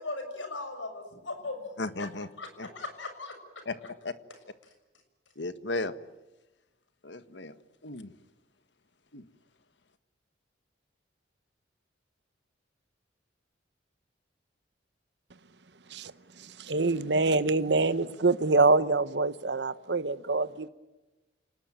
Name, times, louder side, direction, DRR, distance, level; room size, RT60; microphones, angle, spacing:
voice 1, 0.0-1.7 2.4-2.5 2.8-3.3, left 3 dB, 90° left, 7 dB, 6.9 m, -37 dB
voice 2, 1.8-2.3 2.6-2.7 3.6-4.1 5.3-5.9 7.0-7.6 7.8-8.1 9.1-9.3, left 2 dB, 70° left, 12 dB, 1.6 m, -35 dB
voice 3, 16.7-20.7, right 3 dB, 65° right, 14 dB, 0.9 m, -25 dB
29.0 x 19.5 x 9.1 m, 1.1 s
head